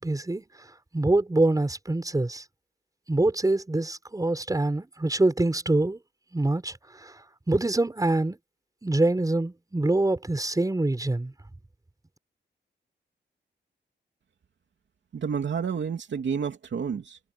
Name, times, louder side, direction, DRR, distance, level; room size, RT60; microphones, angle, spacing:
voice 1, 0.0-0.4 0.9-2.4 3.1-6.0 6.3-7.2 7.5-8.4 8.8-11.3, right 2 dB, 20° right, 6.0 m, -25 dB
voice 2, 15.1-17.2, right 6 dB, 70° right, 3.1 m, -30 dB
wide cardioid pair, 115°, 19 cm